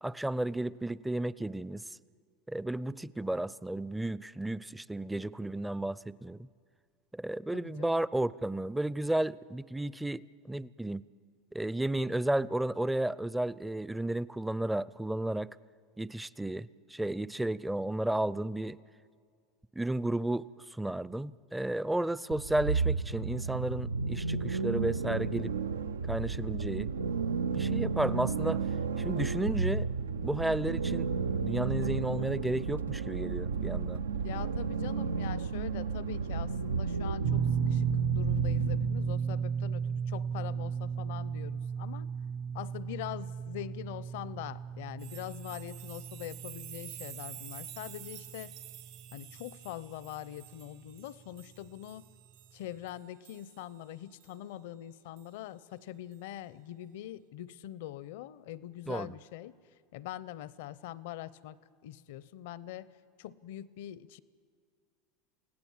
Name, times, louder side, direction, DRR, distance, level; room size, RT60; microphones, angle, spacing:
voice 1, 0.0-1.9 2.5-6.5 7.1-11.0 11.5-15.5 16.0-18.8 19.8-25.6 26.1-26.9 27.5-28.6 29.0-29.9 30.2-31.1 31.4-34.0 58.9-59.2, right 1 dB, 5° right, 20 dB, 0.5 m, -33 dB
voice 2, 7.5-7.9 34.2-42.1 42.5-48.5 49.1-52.1 52.5-59.6 59.9-62.9 63.2-64.2, left 12 dB, 70° left, 19 dB, 0.7 m, -43 dB
sound 1, 22.3-39.2, right 5 dB, 90° right, 0.5 m, -32 dB
sound 2, 37.2-49.5 49.7-50.0 51.6-51.7, right 6 dB, 45° right, 1.1 m, -34 dB
sound 3, 45.0-53.6 54.2-54.3 55.2-55.3, right 11 dB, 65° right, 1.8 m, -49 dB
28.5 x 17.0 x 7.4 m, 2.1 s
hypercardioid pair, 85°, 0 cm